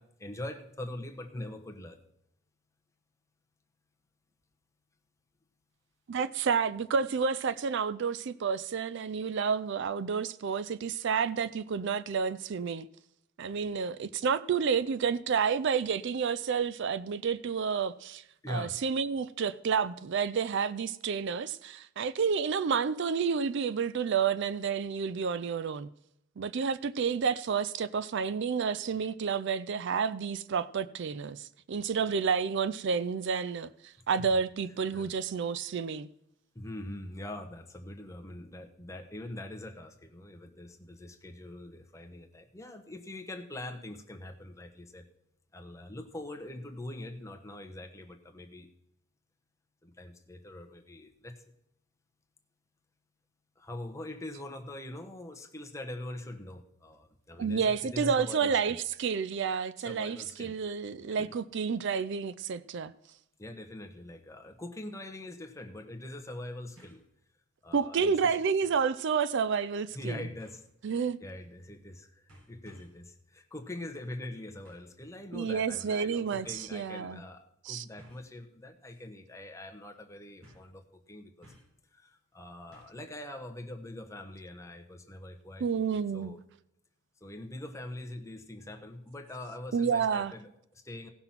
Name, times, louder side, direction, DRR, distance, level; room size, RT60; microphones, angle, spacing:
voice 1, 0.0-2.0 18.4-18.8 34.9-35.1 36.5-45.1 45.5-48.7 49.8-51.4 53.6-58.8 59.8-60.5 61.2-61.3 63.4-67.0 67.6-68.3 69.9-81.5 81.9-85.7 86.1-86.4 87.2-91.1, left 1 dB, 15° left, 1.0 m, -43 dB
voice 2, 6.1-12.9 13.4-25.9 26.4-36.1 57.4-62.9 67.7-70.2 70.8-71.2 75.3-77.2 77.6-77.8 85.6-86.4 89.7-90.3, right 6 dB, 55° right, 0.4 m, -30 dB
sound 1, 66.8-67.1 67.5-67.6 68.6-68.9 70.4-70.7 71.7-71.9 72.3-73.0 74.6-75.0 75.9-76.0 76.4-76.7 78.0-78.3 78.8-79.1 79.3-79.4 80.4-80.8 81.4-81.8 82.7-83.1 83.4-83.5, equal, 85° right, 4.3 m, -58 dB
16.5 x 5.9 x 5.8 m
head